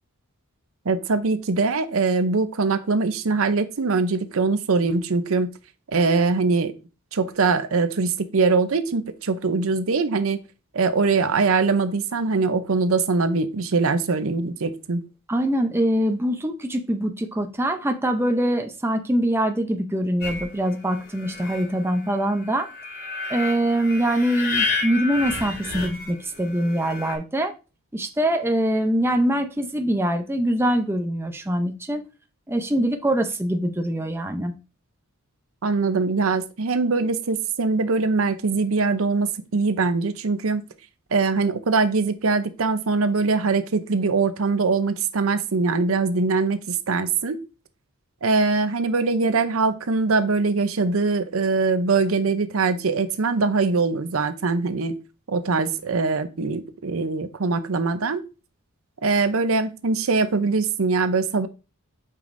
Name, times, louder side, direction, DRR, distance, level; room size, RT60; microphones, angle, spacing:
voice 1, 0.9-5.5 5.9-6.7 7.1-10.4 10.7-15.0 35.6-40.6 41.1-47.4 48.2-54.9 55.3-58.2 59.0-61.5, right 4 dB, 65° right, 11 dB, 0.6 m, -22 dB
voice 2, 15.3-22.7 23.3-27.5 27.9-32.0 32.5-34.5, right 1 dB, 10° right, 5 dB, 0.6 m, -23 dB
sound 1, 20.2-27.2, left 4 dB, 50° left, 2.4 m, -31 dB
8.3 x 5.0 x 2.6 m, 0.31 s
head